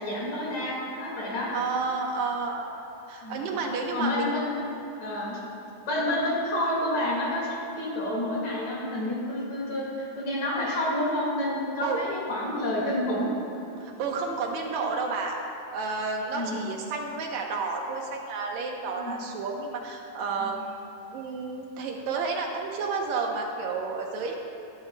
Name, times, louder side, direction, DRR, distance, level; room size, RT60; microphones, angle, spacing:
voice 1, 0.0-1.5 3.2-3.5 3.9-4.5 5.0-5.4 5.9-7.5 7.7-13.3 16.3-16.6 19.0-19.2 20.4-20.6, left 1 dB, 50° left, -5 dB, 2.9 m, -29 dB
voice 2, 1.5-4.3 6.0-6.2 11.8-12.0 13.8-15.4 15.7-20.7 21.1-24.4, right 4 dB, 85° right, 0 dB, 1.6 m, -31 dB
20.0 x 9.3 x 2.2 m, 2.8 s
omnidirectional pair, 4.3 m